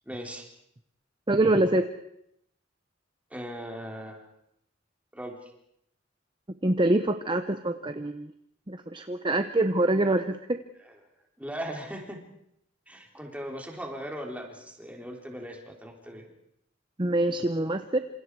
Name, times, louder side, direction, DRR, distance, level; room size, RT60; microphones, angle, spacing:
voice 1, 0.1-0.5 3.3-4.3 5.1-5.5 10.8-11.0 11.4-12.2 12.9-16.3, equal, 5° right, 1 dB, 3.6 m, -39 dB
voice 2, 1.3-1.9 6.6-8.3 8.7-10.6 17.0-18.0, right 1 dB, 25° right, 8 dB, 0.9 m, -25 dB
27.5 x 27.0 x 4.8 m, 0.76 s
head